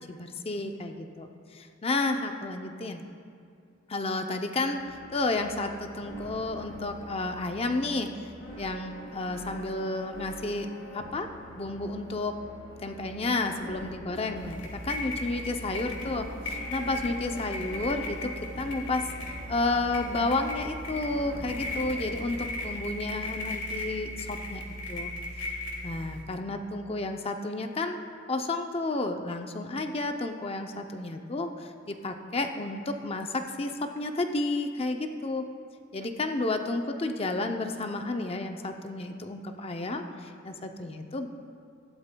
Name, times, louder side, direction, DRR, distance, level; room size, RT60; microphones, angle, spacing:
voice 1, 0.1-3.0 3.9-4.8 5.1-8.1 8.6-11.3 11.5-12.4 12.8-19.0 19.5-25.1 25.4-25.5 25.8-28.0 28.3-35.4 35.9-41.3, left 2 dB, 30° left, 5 dB, 0.6 m, -31 dB
sound 1, 4.8-22.7, equal, 85° left, 2.4 m, -45 dB
sound 2, 14.4-26.2, left 1 dB, 60° left, 2.1 m, -37 dB
15.5 x 11.5 x 2.3 m, 2.4 s
head